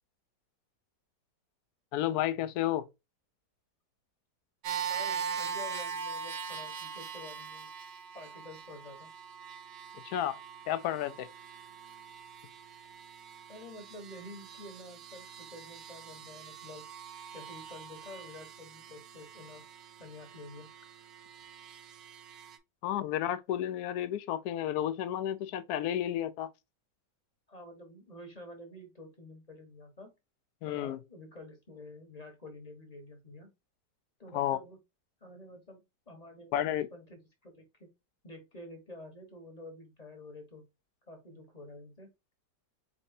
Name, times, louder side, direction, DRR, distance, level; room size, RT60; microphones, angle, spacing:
voice 1, 1.9-2.9 10.0-10.4 10.7-11.3 22.8-26.5 30.6-31.0 34.3-34.6 36.5-36.9, left 11 dB, 70° left, 1.0 m, -31 dB
sound 1, 4.6-22.6, right 6 dB, 85° right, 1.5 m, -42 dB
voice 2, 4.8-7.7 8.1-9.1 13.5-16.8 17.3-19.6 20.0-20.7 27.5-30.1 30.6-33.5 34.2-34.8 35.2-35.8 36.1-37.9 38.2-40.6 41.1-42.1, left 1 dB, 25° left, 1.0 m, -49 dB
4.3 x 4.0 x 2.6 m
omnidirectional pair, 1.9 m